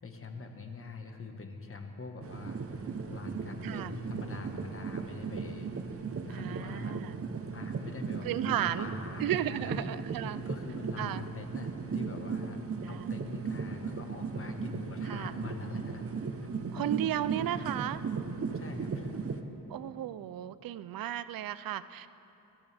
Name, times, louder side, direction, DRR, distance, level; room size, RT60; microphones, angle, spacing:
voice 1, 0.0-2.8 3.1-5.7 6.2-7.0 7.5-9.9 10.5-12.6 12.9-16.9 18.5-19.2, left 3 dB, 40° left, 4 dB, 1.5 m, -44 dB
sound 1, 2.2-19.4, right 5 dB, 40° right, 0.9 m, -37 dB
voice 2, 3.6-3.9 6.3-7.2 8.2-8.9 9.2-10.4 11.0-11.2 12.8-13.1 15.1-15.3 16.7-18.0 19.7-22.1, right 12 dB, 75° right, 15 dB, 0.5 m, -34 dB
24.0 x 13.5 x 3.5 m, 2.9 s
cardioid pair, 95°, 35 cm